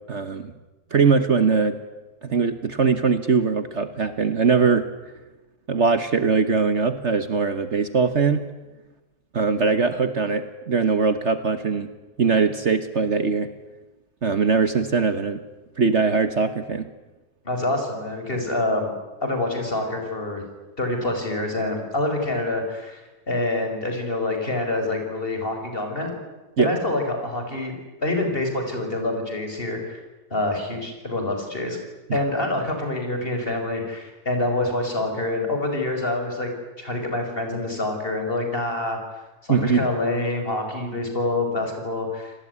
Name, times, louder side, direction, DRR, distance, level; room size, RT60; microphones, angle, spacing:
voice 1, 0.1-0.5 0.9-1.8 2.2-4.8 5.7-8.5 9.3-11.9 12.2-13.5 14.2-15.4 15.8-16.9 26.6-26.7 32.1-32.2 39.5-39.8, right 5 dB, 50° right, 11 dB, 1.5 m, -21 dB
voice 2, 17.4-18.9 19.2-20.4 20.8-23.0 23.3-26.1 26.6-27.7 28.0-30.0 30.3-31.8 32.1-36.5 36.8-39.0 39.5-42.3, left 2 dB, 35° left, 4 dB, 6.0 m, -26 dB
28.5 x 20.0 x 9.7 m, 1.1 s
omnidirectional pair, 1.6 m